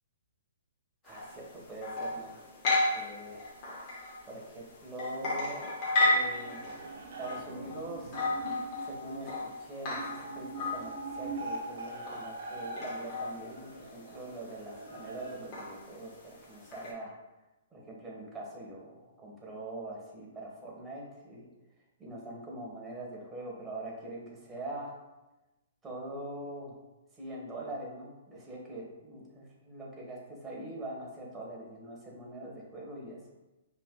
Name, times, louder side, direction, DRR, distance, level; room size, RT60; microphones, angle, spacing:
voice 1, 1.0-2.4 2.7-3.4 4.3-6.7 7.2-8.2 8.8-9.3 9.6-17.1 17.7-21.5 22.0-25.0 25.8-26.7 27.2-33.3, right 1 dB, 15° right, -4 dB, 1.5 m, -43 dB
sound 1, 1.1-16.9, left 2 dB, 40° left, 1.2 m, -35 dB
sound 2, 6.3-15.3, right 2 dB, 60° right, 1.0 m, -42 dB
5.1 x 3.7 x 2.3 m, 1.0 s
hypercardioid pair, 125°, 0 cm